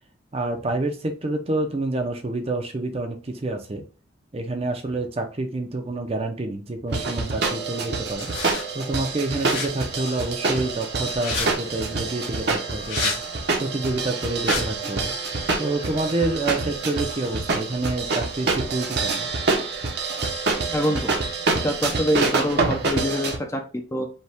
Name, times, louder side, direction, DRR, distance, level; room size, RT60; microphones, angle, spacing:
voice 1, 0.3-3.8 4.3-8.3 8.7-13.1 13.6-15.1 15.6-19.3, right 2 dB, 30° right, 4 dB, 0.6 m, -28 dB
sound 1, 6.9-23.4, right 3 dB, 55° right, 0.8 m, -26 dB
sound 2, 8.1-8.6 9.4-9.7 11.1-11.5 12.8-13.2 14.4-14.6, left 3 dB, 55° left, 1.7 m, -28 dB
voice 2, 20.7-21.1 21.6-24.1, equal, 15° left, 4 dB, 0.5 m, -25 dB
5.3 x 2.3 x 3.5 m, 0.36 s
head